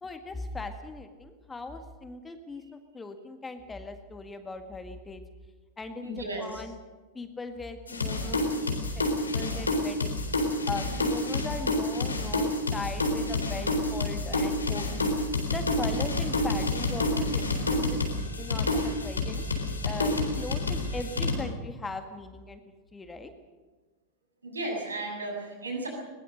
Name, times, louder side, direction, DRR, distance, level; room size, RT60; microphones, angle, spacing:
voice 1, 0.0-5.2 5.8-6.8 7.1-10.2 10.7-15.1 15.5-19.4 19.8-22.6 22.9-23.3, left 3 dB, 15° left, 7 dB, 1.8 m, -39 dB
voice 2, 6.0-6.6 18.6-18.7 24.4-25.9, right 2 dB, 75° right, 1 dB, 7.5 m, -35 dB
sound 1, 7.9-21.3, left 2 dB, 75° left, 3.9 m, -28 dB
22.0 x 21.5 x 6.5 m, 1.3 s
figure-of-eight pair, 90°, 0 cm